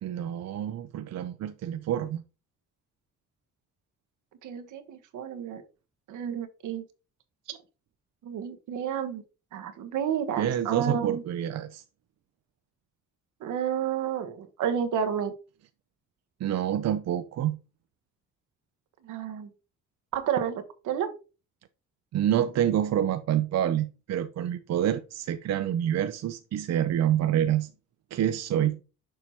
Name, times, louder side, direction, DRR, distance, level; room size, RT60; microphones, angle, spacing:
voice 1, 0.0-2.2 10.4-11.8 16.4-17.6 22.1-27.7 28.1-28.8, right 10 dB, 60° right, 0.5 m, -27 dB
voice 2, 4.4-5.6 6.1-6.8 7.5-7.6 8.2-9.2 9.5-11.2 13.4-15.3 19.0-19.5 20.1-21.1, right 8 dB, 80° right, 1.1 m, -31 dB
6.8 x 3.0 x 5.5 m
cardioid pair, 90°, 30 cm